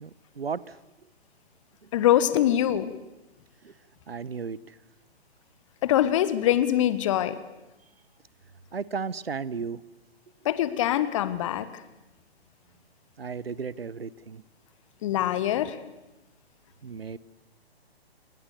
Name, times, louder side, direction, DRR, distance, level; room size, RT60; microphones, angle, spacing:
voice 1, 0.0-0.8 1.8-1.9 3.6-3.7 4.1-4.7 8.7-9.8 13.2-14.4 16.8-17.2, right 5 dB, 65° right, 19 dB, 1.1 m, -34 dB
voice 2, 1.9-2.9 5.8-7.4 10.4-11.7 15.0-15.8, left 12 dB, 30° left, 14 dB, 1.5 m, -23 dB
28.0 x 24.0 x 6.9 m, 0.99 s
figure-of-eight pair, 130°, 32 cm